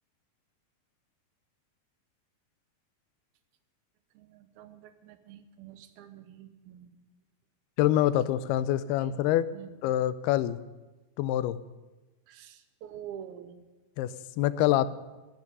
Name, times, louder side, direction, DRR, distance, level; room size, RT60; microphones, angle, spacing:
voice 1, 4.1-7.0 9.0-9.2 9.5-9.8 12.3-13.7 14.7-14.9, right 9 dB, 80° right, 10 dB, 2.8 m, -47 dB
voice 2, 7.8-9.5 9.8-10.6 11.2-11.6 14.0-14.9, left 13 dB, 90° left, 15 dB, 2.6 m, -26 dB
16.5 x 12.5 x 5.5 m, 1.1 s
omnidirectional pair, 4.4 m